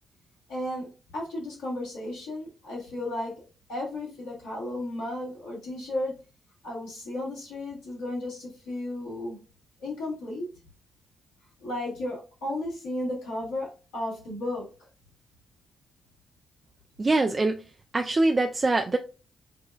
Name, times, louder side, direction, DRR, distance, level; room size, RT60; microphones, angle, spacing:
voice 1, 0.5-3.4 3.7-6.1 6.6-9.4 9.8-10.5 11.6-14.9, left 1 dB, 80° left, 1.7 m, -34 dB
voice 2, 17.0-17.6 17.9-19.0, right 2 dB, 35° right, 0.4 m, -23 dB
6.0 x 2.2 x 2.4 m
hypercardioid pair, 40°, 0 cm